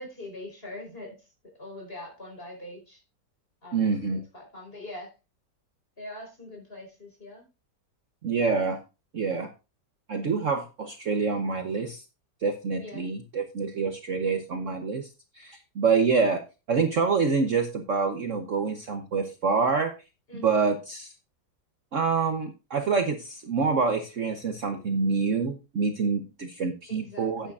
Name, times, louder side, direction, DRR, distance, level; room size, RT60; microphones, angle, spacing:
voice 1, 0.0-3.0 3.6-5.1 6.0-7.5 12.8-13.1 20.3-20.7 26.9-27.5, left 1 dB, 30° left, 1 dB, 4.7 m, -43 dB
voice 2, 3.7-4.2 8.2-8.8 9.1-9.5 10.1-12.0 12.4-15.1 15.3-16.4 16.7-19.9 20.3-21.1 21.9-27.5, right 5 dB, 50° right, 6 dB, 1.2 m, -26 dB
12.0 x 9.2 x 2.5 m, 0.29 s
omnidirectional pair, 1.9 m